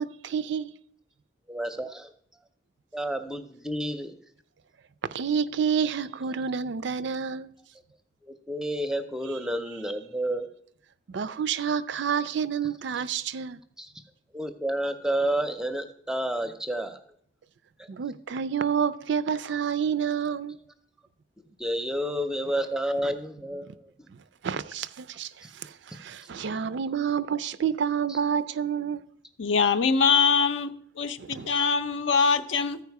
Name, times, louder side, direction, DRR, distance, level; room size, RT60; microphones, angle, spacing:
voice 1, 0.0-0.8 5.1-7.5 11.1-13.6 17.9-20.6 24.4-29.0 31.2-31.5, right 7 dB, 60° right, 0.4 m, -29 dB
voice 2, 1.5-2.1 2.9-4.2 8.2-10.5 13.8-13.9 14.3-17.0 17.8-17.9 21.6-24.1 28.1-28.2, right 1 dB, 5° right, 0.6 m, -30 dB
voice 3, 29.4-32.8, left 5 dB, 70° left, 0.6 m, -23 dB
14.0 x 4.8 x 4.7 m
head